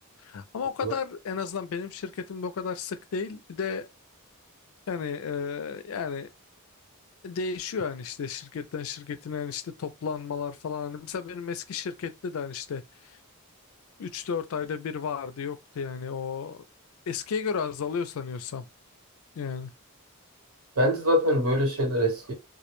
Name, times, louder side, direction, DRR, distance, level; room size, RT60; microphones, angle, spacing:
voice 1, 0.2-3.9 4.9-6.3 7.2-13.2 14.0-16.6 17.1-18.7 19.4-19.7, left 6 dB, 70° left, 0.4 m, -33 dB
voice 2, 20.8-22.3, equal, 80° right, 1.1 m, -24 dB
2.3 x 2.1 x 3.0 m
head